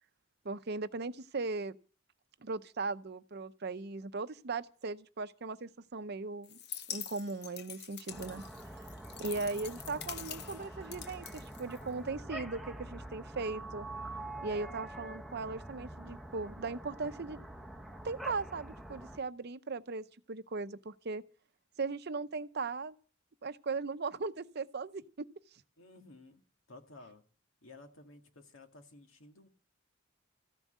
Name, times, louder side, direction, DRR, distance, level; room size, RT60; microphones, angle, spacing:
voice 1, 0.4-1.8 2.4-6.6 6.9-8.4 9.2-13.9 14.4-17.4 18.0-21.2 21.8-22.9 23.4-25.3, right 3 dB, 55° right, 0.7 m, -38 dB
sound 1, 6.4-12.2, left 9 dB, 55° left, 0.8 m, -46 dB
sound 2, 8.1-19.2, right 1 dB, ahead, 0.8 m, -46 dB
voice 2, 25.8-26.4 26.7-27.2 27.6-29.5, left 2 dB, 80° left, 2.1 m, -54 dB
15.0 x 7.3 x 9.1 m
head